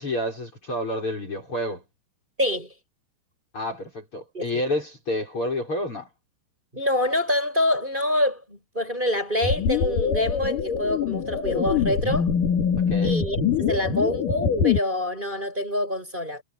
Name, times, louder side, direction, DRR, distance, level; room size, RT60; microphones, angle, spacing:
voice 1, 0.0-1.8 3.5-6.1 12.9-13.2, left 1 dB, 30° left, 6.7 m, -29 dB
voice 2, 2.4-2.7 4.3-4.6 6.7-12.3 13.0-16.4, left 1 dB, 10° right, 8.1 m, -26 dB
sound 1, 9.4-14.8, left 7 dB, 55° left, 3.9 m, -24 dB
omnidirectional pair, 4.9 m